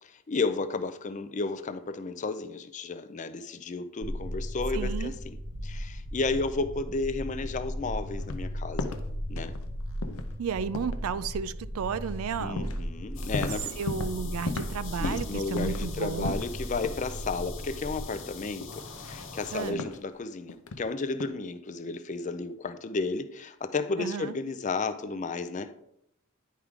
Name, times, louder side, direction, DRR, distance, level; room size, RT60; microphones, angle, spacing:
voice 1, 0.0-5.4 5.6-8.9 9.3-9.5 12.4-13.7 15.0-25.7, left 3 dB, 35° left, 0.4 m, -33 dB
sound 1, 4.0-18.0, equal, 55° right, 1.1 m, -36 dB
voice 2, 4.7-5.2 10.4-12.8 13.4-16.4 19.5-19.8 24.0-24.4, right 6 dB, 85° right, 0.4 m, -33 dB
sound 2, 8.2-8.5 8.8-9.1 9.4-9.7 10.0-10.3 10.7-11.0 12.1-12.2 12.6-12.9 13.1-14.2 14.5-14.8 15.0-16.5 16.8-17.1 17.4-17.5 18.6-19.3 19.8-20.0 20.5-20.8 21.1-21.3, left 3 dB, 85° left, 0.6 m, -36 dB
sound 3, 13.1-19.7, left 3 dB, 60° left, 1.1 m, -43 dB
10.0 x 4.7 x 3.6 m
head